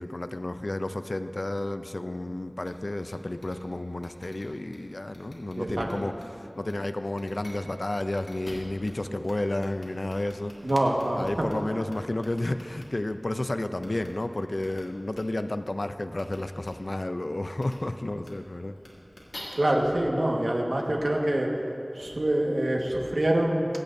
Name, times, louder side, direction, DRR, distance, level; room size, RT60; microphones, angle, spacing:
voice 1, 0.0-10.5 11.2-18.8, left 1 dB, 65° left, 9 dB, 0.4 m, -31 dB
sound 1, 2.6-2.7 3.0-3.1 3.4-3.5 4.0-4.8 5.1-5.5 5.8-6.2 6.6-6.7 7.1-7.5 8.0-8.9 9.2-9.3 9.6-11.5 11.9-12.8 13.8-14.1 14.6-14.8 15.1-15.2 16.1-16.4 16.6-16.7 17.6-17.7 18.2-18.3 18.8-19.4, left 1 dB, 80° left, 2.3 m, -48 dB
voice 2, 5.6-5.9 10.6-11.5 19.5-21.5 21.9-23.7, right 1 dB, 80° right, -1 dB, 1.5 m, -25 dB
24.5 x 8.6 x 2.6 m, 2.8 s
wide cardioid pair, 45°, 0 cm